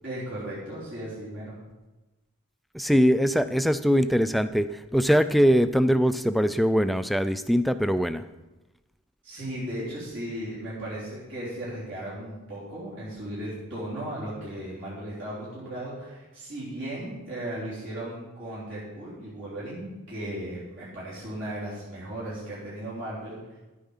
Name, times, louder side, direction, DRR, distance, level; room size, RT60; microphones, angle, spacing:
voice 1, 0.0-1.5 9.2-23.6, right 1 dB, 60° right, -8 dB, 3.7 m, -36 dB
voice 2, 2.7-8.3, equal, ahead, 11 dB, 0.3 m, -22 dB
11.0 x 8.9 x 5.6 m, 1.1 s
head